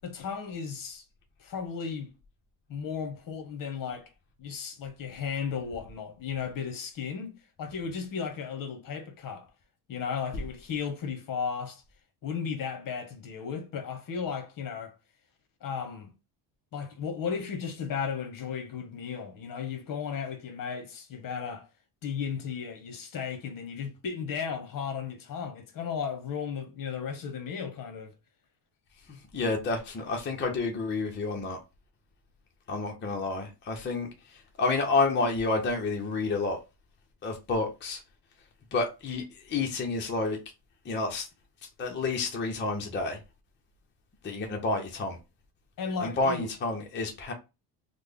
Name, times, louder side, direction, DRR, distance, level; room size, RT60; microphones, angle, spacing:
voice 1, 0.0-1.0 1.4-2.1 2.7-4.1 4.4-9.5 9.9-11.8 12.2-14.9 15.6-16.1 16.7-21.7 22.0-28.1 45.8-46.5, left 6 dB, 50° left, 1.0 m, -35 dB
voice 2, 29.3-31.6 32.7-34.1 34.6-36.6 37.2-38.0 38.7-40.4 40.9-41.3 41.8-43.2 44.2-45.2 46.0-47.3, left 3 dB, 25° left, 0.7 m, -29 dB
3.2 x 2.1 x 3.4 m
cardioid pair, 120°, 43 cm